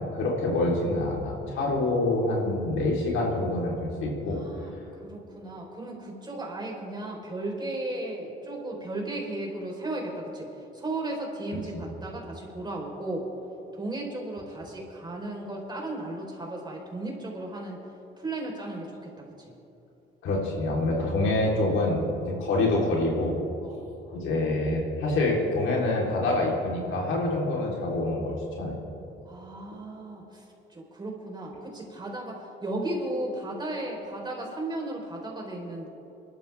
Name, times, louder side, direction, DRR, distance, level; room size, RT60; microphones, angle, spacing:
voice 1, 0.0-3.7 4.0-4.4 11.7-11.8 20.2-23.4 24.1-28.8, left 2 dB, 80° left, -3 dB, 3.7 m, -26 dB
voice 2, 4.3-4.7 5.0-10.5 10.7-13.3 13.7-17.8 18.2-19.5 22.3-22.5 23.6-23.8 29.3-30.4 30.7-35.9, right 2 dB, 20° right, -1 dB, 4.1 m, -35 dB
24.0 x 12.5 x 3.5 m, 2.9 s
cardioid pair, 90°, 20 cm